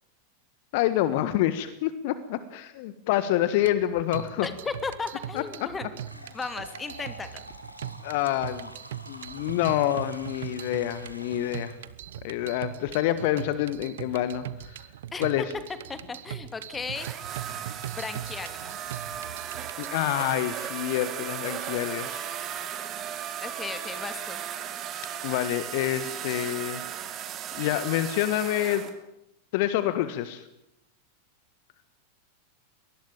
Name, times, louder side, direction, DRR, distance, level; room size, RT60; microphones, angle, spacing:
voice 1, 0.7-4.5 5.3-5.4 8.0-8.7 9.1-11.7 12.2-14.9 15.2-15.4 19.8-22.3 25.2-26.8 27.5-28.9 29.5-30.5, left 13 dB, 50° left, 13 dB, 1.4 m, -27 dB
sound 1, 3.6-19.9, right 11 dB, 60° right, 1.0 m, -40 dB
voice 2, 4.4-5.9 6.1-7.3 15.1-15.5 15.9-17.1 17.9-18.7 23.4-24.4, left 4 dB, 15° left, 10 dB, 2.7 m, -35 dB
sound 2, 6.0-11.9, equal, 90° left, 2.9 m, -47 dB
sound 3, 16.9-28.9, right 9 dB, 30° right, 3.0 m, -36 dB
23.5 x 19.5 x 8.9 m, 0.84 s
figure-of-eight pair, 90°, 0 cm